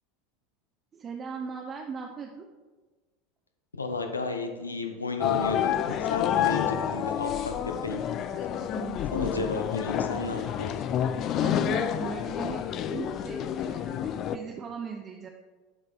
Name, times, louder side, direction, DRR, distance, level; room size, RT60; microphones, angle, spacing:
voice 1, 0.9-2.5 6.3-6.6 8.3-9.5 11.4-15.3, right 5 dB, 30° right, 2 dB, 0.6 m, -39 dB
voice 2, 3.7-5.7 6.0-7.5 7.8-8.0 9.1-10.7, left 3 dB, 85° left, 5 dB, 0.7 m, -33 dB
sound 1, 5.2-14.4, left 10 dB, 40° left, 0.4 m, -29 dB
11.5 x 4.0 x 3.4 m, 1.3 s
figure-of-eight pair, 75°, 0 cm